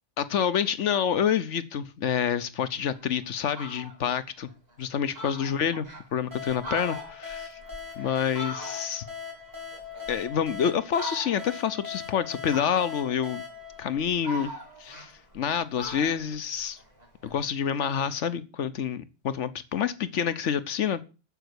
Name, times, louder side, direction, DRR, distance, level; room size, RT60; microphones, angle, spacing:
voice 1, 0.2-4.5 4.8-7.6 8.0-9.0 10.1-13.4 13.8-14.5 14.8-16.8 17.2-21.1, left 8 dB, 75° left, 14 dB, 1.2 m, -28 dB
Fowl, 2.9-3.0 3.4-4.0 4.5-4.6 4.8-4.9 5.1-6.0 6.5-9.1 9.5-10.5 10.9-11.6 12.5-13.2 13.7-15.5 15.8-17.4, equal, 35° right, 4.6 m, -40 dB
sound 1, 6.3-14.8, left 6 dB, 15° right, 3.1 m, -40 dB
9.6 x 7.8 x 8.1 m, 0.33 s
omnidirectional pair, 1.2 m